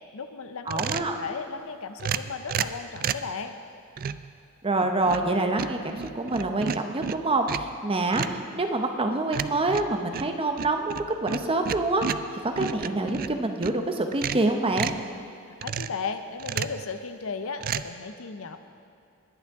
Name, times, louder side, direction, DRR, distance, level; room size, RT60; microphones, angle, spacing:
voice 1, 0.1-3.6 15.5-18.6, left 5 dB, 65° left, 9 dB, 0.7 m, -35 dB
voice 2, 0.7-1.2 4.6-12.1 12.4-14.9, right 2 dB, 25° right, 5 dB, 0.8 m, -26 dB
sound 1, 0.7-1.2 2.0-3.3 4.0-4.3 4.8-5.3 5.6-7.8 8.1-8.4 9.3-13.8 14.1-15.1 15.6-16.0 16.4-16.8 17.6-17.8, right 7 dB, 40° right, 0.3 m, -32 dB
20.5 x 8.6 x 3.6 m, 2.6 s
head